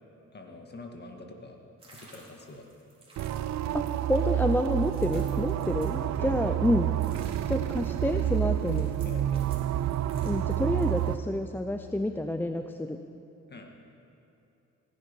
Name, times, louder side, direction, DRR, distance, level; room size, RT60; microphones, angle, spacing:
voice 1, 0.3-1.6 1.9-2.7 5.1-5.3 6.1-6.5 9.0-9.5 13.5-13.7, left 2 dB, 35° left, 3 dB, 1.9 m, -46 dB
sound 1, 1.8-6.7 7.0-11.1, right 2 dB, 20° right, 4.0 m, -55 dB
sound 2, 3.2-11.2, right 12 dB, 65° right, 0.5 m, -29 dB
voice 2, 3.7-6.9 7.5-8.9 10.2-13.0, left 1 dB, 5° left, 6 dB, 0.5 m, -29 dB
16.5 x 11.0 x 5.4 m, 2.8 s
cardioid pair, 90°, 30 cm